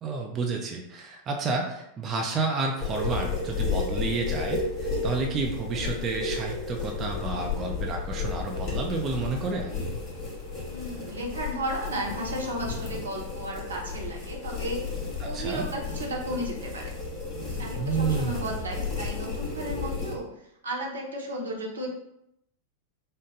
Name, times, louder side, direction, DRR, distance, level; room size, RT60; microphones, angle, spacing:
voice 1, 0.0-9.7 15.2-15.7 17.8-18.5, right 4 dB, 25° right, 1 dB, 0.6 m, -30 dB
sound 1, 2.8-20.1, left 4 dB, 25° left, 1.2 m, -32 dB
voice 2, 10.7-14.8 15.2-16.9 17.5-20.3 20.6-21.9, right 1 dB, 70° right, -2 dB, 1.0 m, -34 dB
4.9 x 2.1 x 3.8 m, 0.80 s
figure-of-eight pair, 90°, 0 cm